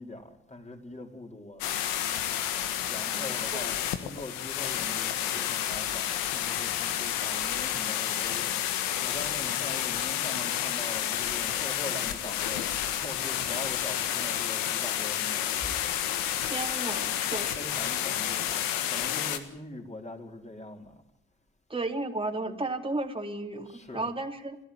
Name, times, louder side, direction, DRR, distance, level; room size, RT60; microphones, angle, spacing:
voice 1, 0.0-1.7 2.9-8.6 9.0-15.9 17.2-18.5 18.9-21.0 23.6-24.1, left 2 dB, 20° left, 5.0 m, -42 dB
sound 1, 1.6-19.4, left 11 dB, 80° left, 1.7 m, -30 dB
voice 2, 3.1-3.7 16.5-17.7 21.7-24.6, right 2 dB, 15° right, 3.1 m, -34 dB
28.5 x 13.5 x 9.2 m
hypercardioid pair, 50°, 35 cm